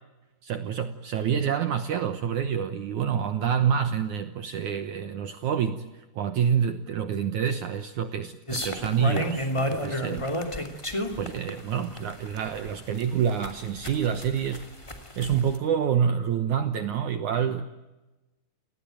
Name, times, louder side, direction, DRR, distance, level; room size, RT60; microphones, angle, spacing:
voice 1, 0.4-5.9 6.2-10.4 11.2-14.7 15.2-17.7, right 8 dB, 70° right, 10 dB, 1.9 m, -27 dB
sound 1, 8.5-15.6, equal, 10° left, 1.9 m, -31 dB
30.0 x 19.5 x 9.2 m, 1.1 s
omnidirectional pair, 4.8 m